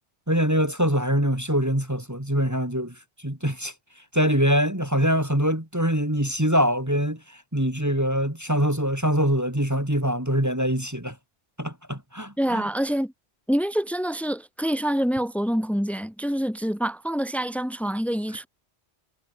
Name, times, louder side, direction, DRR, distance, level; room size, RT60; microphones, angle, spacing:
voice 1, 0.3-3.0 3.2-3.7 4.1-11.2 11.6-12.6, equal, 15° right, 3.4 m, -24 dB
voice 2, 12.4-13.1 13.5-18.5, equal, ahead, 3.1 m, -26 dB
omnidirectional pair, 1.2 m